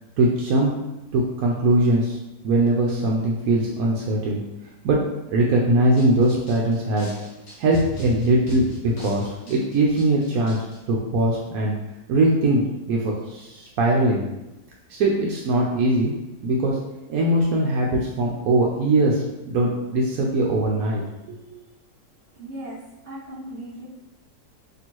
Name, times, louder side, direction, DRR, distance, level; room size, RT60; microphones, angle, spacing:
voice 1, 0.2-0.7 1.1-2.2 2.4-4.4 4.8-5.0 5.3-7.1 7.6-10.6 10.9-11.7 12.1-14.2 14.9-16.1 16.4-16.8 17.1-21.0 21.3-21.6, right 1 dB, 70° right, -2 dB, 0.8 m, -21 dB
sound 1, 6.0-10.8, left 1 dB, 40° left, 1.2 m, -37 dB
voice 2, 22.3-22.8 23.0-23.8, right 1 dB, 40° right, -7 dB, 1.5 m, -37 dB
4.3 x 3.0 x 3.0 m, 0.97 s
omnidirectional pair, 2.0 m